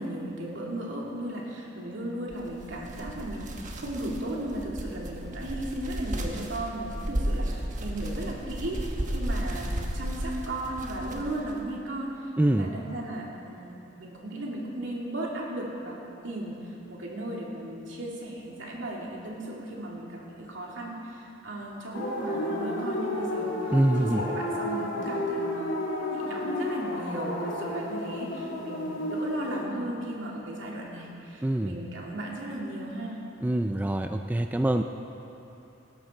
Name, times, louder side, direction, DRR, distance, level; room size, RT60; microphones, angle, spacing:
voice 1, 0.0-33.2, right 1 dB, 70° right, -3 dB, 2.7 m, -36 dB
sound 1, 2.3-11.6, right 1 dB, 40° right, 1.3 m, -34 dB
voice 2, 12.4-12.7 23.7-24.2 31.4-31.7 33.4-34.8, right 1 dB, 10° right, 6 dB, 0.3 m, -24 dB
sound 2, 21.9-29.7, left 1 dB, 80° left, 2.2 m, -32 dB
19.0 x 11.5 x 4.4 m, 3.0 s
head